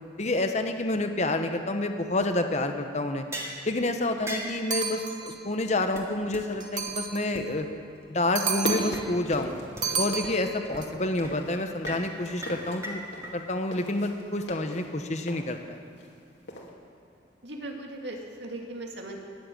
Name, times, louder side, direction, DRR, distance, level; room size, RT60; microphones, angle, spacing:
voice 1, 0.2-3.3 3.6-7.7 8.1-9.5 10.0-13.0 13.3-15.8, left 2 dB, 40° left, 6 dB, 0.9 m, -28 dB
sound 1, 3.3-3.6 4.3-4.6 5.3-5.4 5.6-5.7 6.0-6.1 6.3-6.4 6.9-7.0 7.3-7.4 8.8-9.0 9.3-9.4 9.8-9.9 10.2-10.3 10.7-10.9 11.2-11.4 11.8-12.0 12.4-13.3, equal, 15° right, 2.0 m, -37 dB
sound 2, 4.7-5.5 6.6-7.4 8.3-9.1 9.8-10.8, right 6 dB, 45° right, 1.2 m, -31 dB
sound 3, 8.5-10.4 10.6-16.2 16.5-16.7, left 1 dB, 70° left, 2.4 m, -39 dB
voice 2, 17.4-19.2, right 2 dB, 70° right, 1 dB, 2.2 m, -38 dB
21.0 x 7.7 x 9.1 m, 2.7 s
head